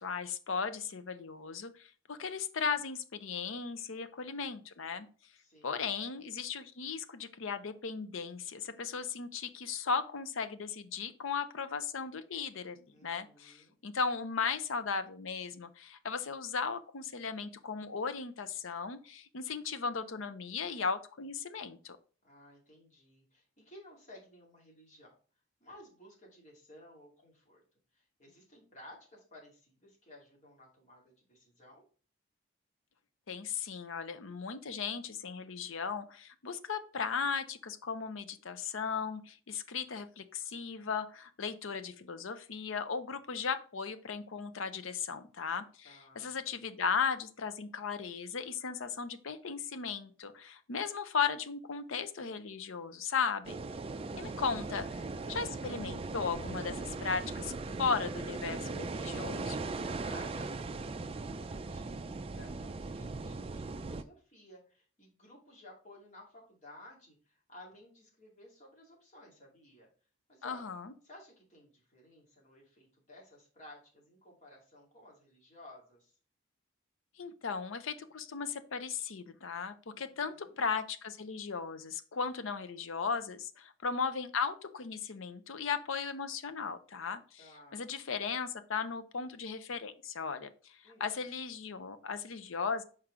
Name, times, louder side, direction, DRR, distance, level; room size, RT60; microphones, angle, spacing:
voice 1, 0.0-5.1 5.6-22.0 33.3-53.5 54.2-59.6 70.4-70.9 77.2-92.8, left 5 dB, 75° left, 11 dB, 0.7 m, -36 dB
voice 2, 5.4-5.8 12.9-13.8 22.2-25.2 25.6-27.6 27.9-31.8 45.8-46.3 53.8-55.1 60.0-69.9 70.3-70.7 71.0-76.1 79.9-80.6 87.4-87.8 90.8-91.1, left 1 dB, 35° left, -2 dB, 2.5 m, -56 dB
sound 1, 53.4-64.0, right 3 dB, 30° right, 0.3 m, -39 dB
6.0 x 4.5 x 3.7 m, 0.39 s
head